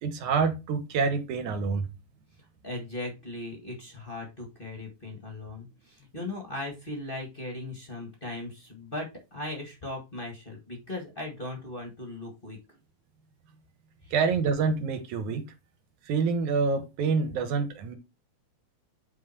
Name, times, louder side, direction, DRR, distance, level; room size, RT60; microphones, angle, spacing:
voice 1, 0.0-1.9 14.1-15.4 16.1-18.0, right 5 dB, 60° right, 2.4 m, -27 dB
voice 2, 2.6-12.6 14.0-14.1, left 2 dB, 30° left, 1.0 m, -38 dB
9.0 x 4.4 x 4.5 m
omnidirectional pair, 4.3 m